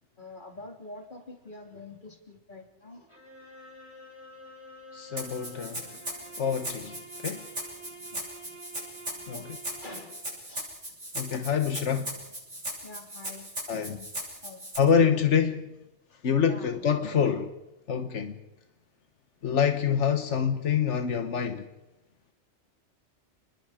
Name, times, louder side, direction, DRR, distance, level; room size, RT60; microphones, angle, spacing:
voice 1, 0.2-3.1 8.1-8.5 9.1-9.5 9.8-10.2 10.5-10.7 12.8-14.1 14.4-14.7 16.4-17.1, left 2 dB, 45° left, 3.3 m, -46 dB
sound 1, 3.1-10.4, right 1 dB, 25° left, 3.8 m, -49 dB
voice 2, 4.9-5.8 6.4-7.0 7.2-7.4 9.3-9.6 11.1-12.1 13.7-14.0 14.8-15.7 16.2-17.5 17.9-18.3 19.4-21.6, left 7 dB, 90° left, 1.5 m, -26 dB
Rattle (instrument), 5.2-14.8, right 1 dB, 90° right, 7.4 m, -38 dB
29.5 x 21.0 x 5.1 m
omnidirectional pair, 1.2 m